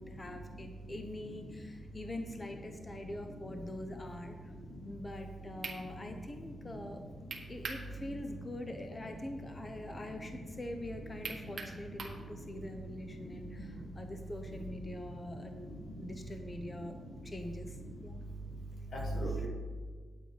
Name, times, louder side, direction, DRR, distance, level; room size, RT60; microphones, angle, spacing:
voice 1, 0.0-4.5 4.8-7.1 7.5-17.0 17.2-17.8 18.0-18.2, left 1 dB, 25° left, 5 dB, 0.9 m, -44 dB
sound 1, 5.2-5.3 5.6-5.8 7.3-7.9 8.2-8.3 11.2-12.2, right 4 dB, 55° right, 1.5 m, -41 dB
voice 2, 13.2-13.7 14.5-14.6 15.3-16.1 16.7-16.8 17.9-18.0 18.9-19.3, right 1 dB, 70° left, -1 dB, 2.5 m, -41 dB
9.8 x 7.9 x 5.1 m, 1.6 s
cardioid pair, 90°, 0 cm